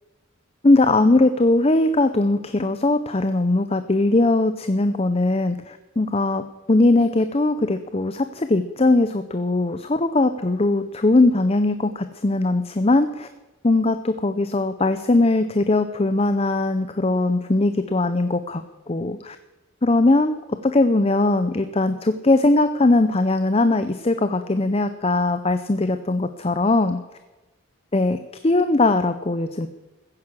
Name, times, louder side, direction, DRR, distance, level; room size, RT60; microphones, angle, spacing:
voice 1, 0.6-13.3 13.6-19.4 19.8-27.0 27.9-28.2 28.4-29.7, left 2 dB, 30° left, 10 dB, 0.6 m, -20 dB
15.5 x 9.7 x 7.4 m, 1.1 s
head